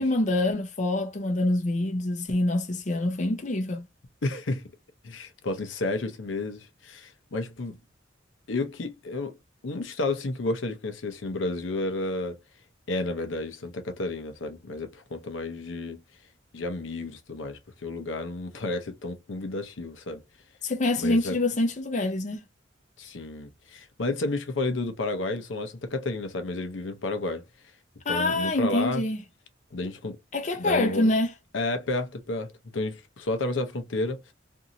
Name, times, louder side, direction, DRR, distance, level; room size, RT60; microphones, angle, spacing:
voice 1, 0.0-3.8 20.6-22.4 28.0-29.2 30.3-31.3, left 2 dB, 40° left, 0.6 m, -25 dB
voice 2, 4.2-4.7 5.0-7.8 8.5-9.4 9.6-12.4 12.9-16.0 16.5-20.2 21.0-21.4 23.0-27.5 28.1-29.0 29.7-30.2 30.6-31.1 31.5-34.3, left 2 dB, 85° left, 0.7 m, -31 dB
2.6 x 2.6 x 2.8 m
head